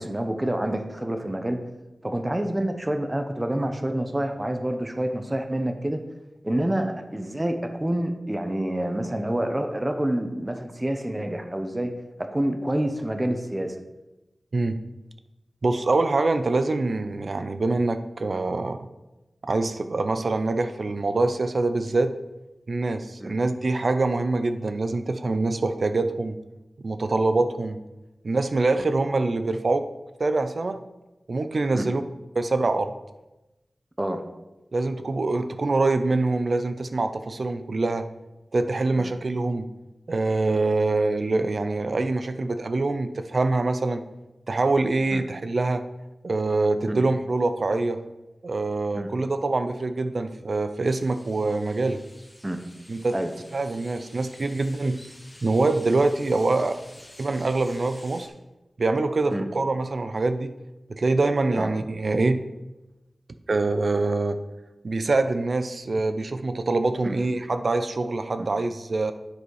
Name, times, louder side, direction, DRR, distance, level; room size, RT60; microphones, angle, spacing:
voice 1, 0.0-1.6 2.0-6.0 6.4-11.9 12.2-13.7 23.2-23.3 31.7-31.9 34.0-34.2 39.0-39.1 45.1-45.2 46.9-47.0 48.9-49.1 52.4-52.6 53.1-53.3 59.3-59.5 61.5-61.7 67.0-67.1 68.4-68.5, right 1 dB, 20° right, 6 dB, 0.8 m, -27 dB
voice 2, 15.6-18.8 19.4-22.1 22.7-26.4 26.8-27.8 28.2-29.9 30.2-30.8 31.3-32.0 32.3-32.9 34.7-38.1 38.5-39.7 40.1-44.0 44.5-45.8 46.2-48.0 48.4-52.0 52.9-53.2 53.5-55.0 55.4-56.8 57.2-58.3 58.8-60.5 60.9-62.4 63.5-64.4 64.8-69.1, right 3 dB, 65° right, 9 dB, 0.5 m, -24 dB
sound 1, 50.8-58.3, left 1 dB, 15° left, 1.3 m, -50 dB
9.6 x 4.2 x 4.7 m, 1.0 s
wide cardioid pair, 55°, 0 cm